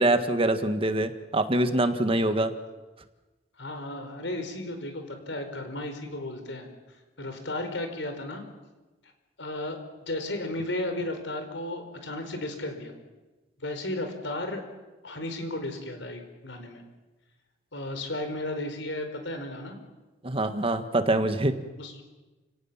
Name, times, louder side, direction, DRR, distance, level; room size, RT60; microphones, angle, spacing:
voice 1, 0.0-2.5 20.2-21.6, right 1 dB, 30° right, 8 dB, 1.7 m, -24 dB
voice 2, 3.6-6.7 7.2-8.4 9.4-12.9 13.6-14.6 15.0-16.8 17.7-19.8 21.8-21.9, left 1 dB, 85° left, 6 dB, 4.7 m, -34 dB
29.5 x 18.0 x 7.4 m, 1.2 s
head